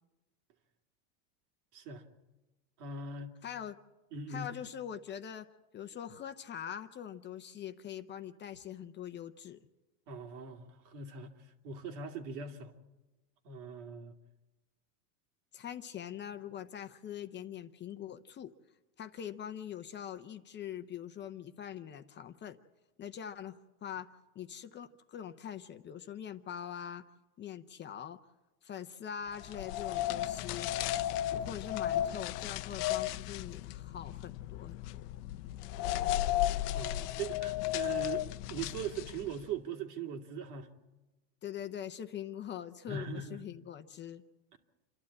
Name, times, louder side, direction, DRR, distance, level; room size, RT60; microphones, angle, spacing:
voice 1, 1.7-2.0 2.8-3.4 4.1-4.5 10.1-11.3 11.6-12.7 13.4-14.1 36.7-38.2 38.5-40.7 42.9-43.4 44.5-44.6, right 5 dB, 75° right, 2.9 m, -40 dB
voice 2, 3.4-3.7 4.3-5.5 5.7-9.6 15.5-18.5 19.0-22.6 23.0-24.1 24.3-27.0 27.4-28.2 28.6-30.7 31.4-35.0 41.4-44.2, left 9 dB, 25° left, 0.7 m, -43 dB
sound 1, 29.4-39.4, left 13 dB, 75° left, 0.7 m, -34 dB
28.0 x 12.5 x 8.6 m
supercardioid pair, 140°, 47 cm